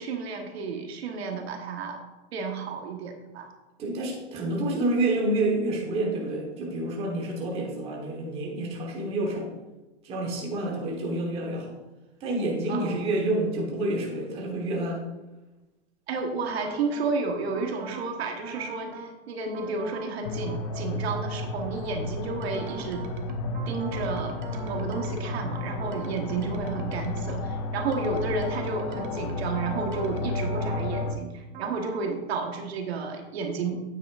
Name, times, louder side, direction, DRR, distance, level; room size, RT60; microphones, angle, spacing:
voice 1, 0.0-2.0 2.3-3.5 12.7-13.1 16.1-23.0 23.7-24.4 24.6-33.8, right 4 dB, 65° right, 3 dB, 1.3 m, -32 dB
voice 2, 3.8-9.5 10.0-11.8 12.2-15.0, right 2 dB, 15° right, -2 dB, 1.2 m, -28 dB
sound 1, 16.4-17.1 17.5-18.1 18.4-19.1 19.5-20.1 20.4-27.5 27.9-31.1 31.5-32.1, right 4 dB, 45° right, 1.1 m, -42 dB
sound 2, 20.2-31.2, left 2 dB, 30° left, 0.5 m, -32 dB
9.1 x 8.1 x 2.5 m, 1.1 s
supercardioid pair, 170°, 34 cm